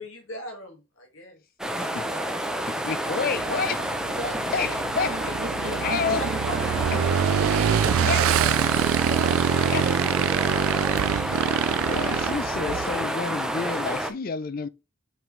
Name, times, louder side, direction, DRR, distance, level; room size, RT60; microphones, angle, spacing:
voice 1, 0.0-1.4 4.2-4.7 5.3-5.4 5.6-5.8 6.1-7.0 7.4-8.4, equal, 85° left, 1.9 m, -39 dB
sound 1, 1.6-14.1, equal, 5° right, 0.6 m, -29 dB
voice 2, 2.7-3.8 4.5-5.2 5.8-6.2 6.9-7.0 8.0-8.3 9.7-9.9 11.9-14.7, left 5 dB, 45° left, 0.5 m, -29 dB
Motorcycle / Engine, 3.4-13.1, right 9 dB, 85° right, 0.3 m, -25 dB
voice 3, 5.1-6.7 7.4-10.8, right 3 dB, 45° right, 0.8 m, -37 dB
5.8 x 5.3 x 3.2 m
head